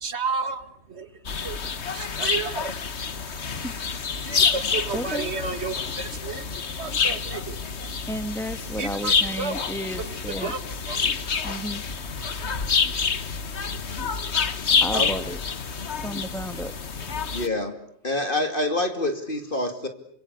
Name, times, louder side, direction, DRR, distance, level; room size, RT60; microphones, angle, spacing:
voice 1, 0.0-1.6 1.9-2.7 4.2-6.5 6.8-7.6 8.8-9.6 10.4-11.1, right 5 dB, 55° right, 10 dB, 2.1 m, -32 dB
sound 1, 1.3-17.5, left 5 dB, 60° left, 1.6 m, -27 dB
voice 2, 4.9-5.3 8.1-10.5 11.4-11.8 14.8-15.4 16.0-16.7 17.0-17.2, equal, ahead, 9 dB, 1.8 m, -33 dB
voice 3, 17.3-17.7 18.0-19.9, left 2 dB, 40° left, 6 dB, 2.8 m, -26 dB
28.0 x 26.0 x 8.2 m, 0.68 s
omnidirectional pair, 1.3 m